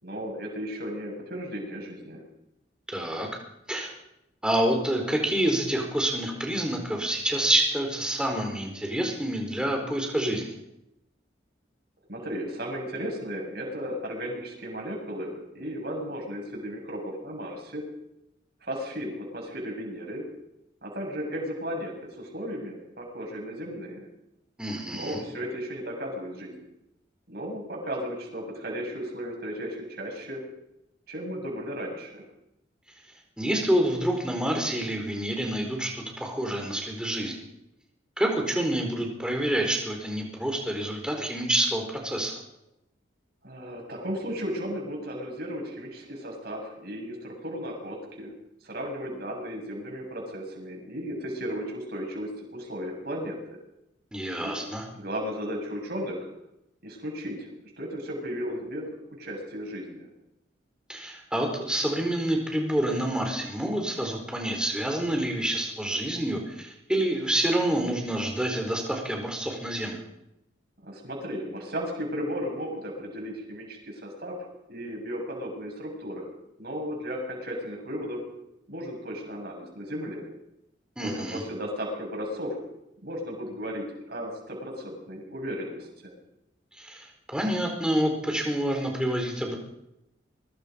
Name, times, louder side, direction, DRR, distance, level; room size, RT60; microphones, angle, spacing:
voice 1, 0.0-2.2 12.1-17.8 18.6-20.2 20.8-24.0 24.9-26.5 27.3-30.4 31.1-32.2 43.4-48.3 48.6-53.6 54.4-54.5 54.9-56.3 56.8-57.4 57.6-60.1 70.8-74.3 74.7-76.3 76.6-78.2 78.7-80.3 81.0-82.6 83.0-86.1, equal, 55° right, 0 dB, 7.5 m, -35 dB
voice 2, 2.9-3.3 3.7-4.0 4.4-10.5 24.6-25.2 33.4-37.4 38.2-42.3 54.1-54.8 60.9-70.0 81.0-81.4 86.8-87.1 87.3-89.6, right 1 dB, 5° right, 1 dB, 4.5 m, -27 dB
23.0 x 23.0 x 5.3 m, 0.85 s
head